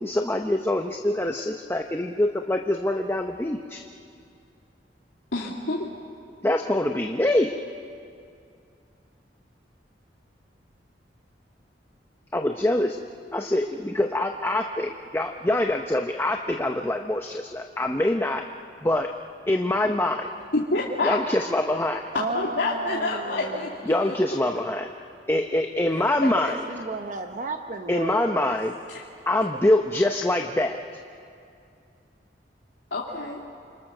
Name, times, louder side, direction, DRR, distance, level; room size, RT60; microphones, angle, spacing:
voice 1, 0.0-3.8 6.4-7.6 12.3-13.0 13.3-18.4 18.8-19.1 19.5-20.4 21.0-22.1 23.9-24.9 25.3-26.6 27.9-28.7 29.3-30.8, left 1 dB, 15° left, 3 dB, 0.8 m, -24 dB
voice 2, 5.3-5.8 20.5-21.2 22.3-24.2 25.9-26.3 32.9-33.4, left 2 dB, 80° left, -4 dB, 2.4 m, -28 dB
voice 3, 22.1-23.8 26.7-28.6, right 3 dB, 45° right, 5 dB, 0.9 m, -33 dB
28.5 x 25.5 x 6.6 m, 2.4 s
head